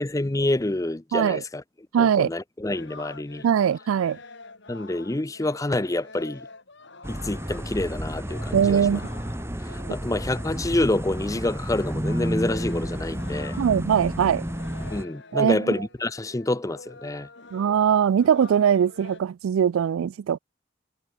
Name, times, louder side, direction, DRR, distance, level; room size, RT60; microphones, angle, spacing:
voice 1, 0.0-1.6 2.0-3.4 4.7-6.5 7.1-9.0 9.6-13.6 14.9-17.3, left 2 dB, 15° left, 0.6 m, -27 dB
voice 2, 1.1-1.4 1.9-2.3 3.4-4.2 8.5-9.0 13.6-14.4 15.3-15.7 17.5-20.4, right 8 dB, 85° right, 0.3 m, -21 dB
sound 1, 2.7-19.2, left 3 dB, 60° left, 3.0 m, -46 dB
sound 2, 7.0-15.0, equal, 10° right, 2.0 m, -31 dB
head